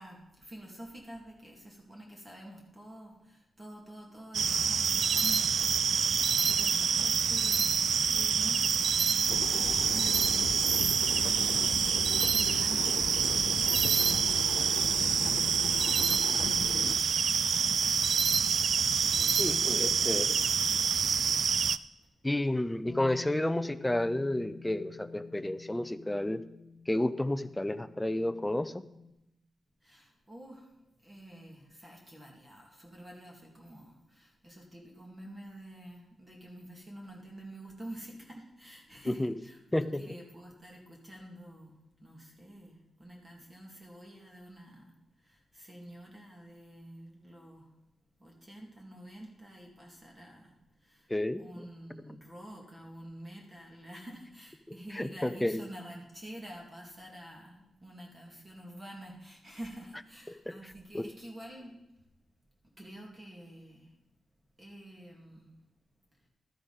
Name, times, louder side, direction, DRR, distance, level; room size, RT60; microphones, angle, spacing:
voice 1, 0.0-12.9 13.2-15.3 15.6-17.1 17.5-18.0 18.8-21.7 29.8-30.7 31.0-44.9 45.2-47.7 48.2-50.5 50.8-51.1 51.3-61.7 62.8-63.9 64.6-65.5, right 1 dB, 20° right, -1 dB, 2.2 m, -48 dB
sound 1, 4.3-21.8, right 6 dB, 55° right, 0.3 m, -27 dB
sound 2, 9.3-17.0, left 8 dB, 90° left, 0.3 m, -39 dB
voice 2, 19.4-20.3 22.2-26.4 26.9-28.7 39.2-39.3 39.7-40.0 51.1-51.7 54.9-55.6 60.5-60.6 60.9-61.1, left 1 dB, 10° left, 11 dB, 0.5 m, -31 dB
Bass guitar, 22.9-29.1, left 5 dB, 55° left, 1.0 m, -49 dB
12.5 x 10.0 x 4.0 m, 0.88 s
wide cardioid pair, 150°, 0 cm